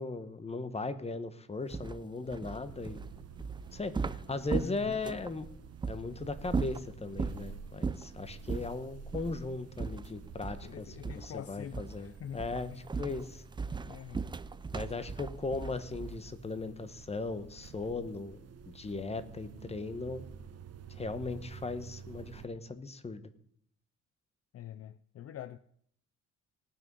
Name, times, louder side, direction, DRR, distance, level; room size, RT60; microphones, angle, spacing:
voice 1, 0.0-3.0 3.7-5.5 5.9-13.4 14.7-18.4 18.7-20.2 20.9-23.2, left 3 dB, 20° left, 1.1 m, -38 dB
sound 1, 1.7-5.3 5.8-6.0 6.4-7.4 7.8-8.1 8.5-8.7 9.1-9.3 9.8-10.7 11.0-11.4 11.7-12.0 12.4-16.3, right 4 dB, 15° right, 0.4 m, -37 dB
sound 2, 2.6-22.5, right 6 dB, 55° right, 1.0 m, -50 dB
voice 2, 4.6-5.0 10.6-12.4 12.7-12.8 13.9-14.3 24.5-25.6, left 10 dB, 50° left, 0.5 m, -45 dB
18.5 x 6.4 x 5.4 m
cardioid pair, 90°, 30 cm